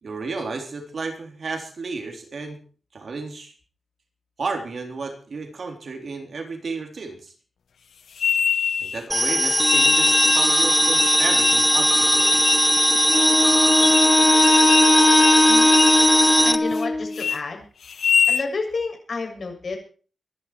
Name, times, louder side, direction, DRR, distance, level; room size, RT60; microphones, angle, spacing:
voice 1, 0.0-2.6 2.9-3.5 4.4-7.3 8.8-12.3, right 4 dB, 50° right, 4 dB, 3.5 m, -32 dB
sound 1, 8.2-9.0 9.7-10.5 11.0-11.7 12.2-12.7 13.1-13.2 13.7-14.1 14.4-14.9 15.2-15.4 15.7-16.0 16.4-16.9 17.1-17.4 17.9-18.5, left 7 dB, 75° left, 0.9 m, -24 dB
sound 2, 9.1-16.6, equal, ahead, 1.2 m, -18 dB
Wind instrument woodwind instrument, 13.1-17.3, left 2 dB, 20° left, 1.7 m, -19 dB
voice 2, 15.5-15.8 16.4-17.6 18.3-19.8, left 4 dB, 45° left, 3 dB, 7.3 m, -30 dB
24.5 x 11.5 x 4.7 m, 0.40 s
wide cardioid pair, 160°, 0 cm